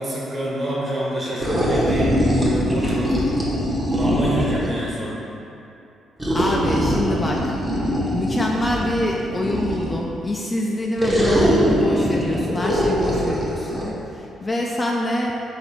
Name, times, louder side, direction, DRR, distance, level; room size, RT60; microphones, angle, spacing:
voice 1, 0.0-3.3 3.9-5.2, equal, 40° right, -6 dB, 1.3 m, -26 dB
sound 1, 1.4-4.8 6.2-10.0 11.0-13.9, equal, 10° right, 0.8 m, -22 dB
voice 2, 6.3-7.4 8.1-15.4, left 1 dB, 20° left, -1 dB, 0.3 m, -25 dB
4.1 x 2.6 x 4.5 m, 2.7 s
cardioid pair, 90°, 0 cm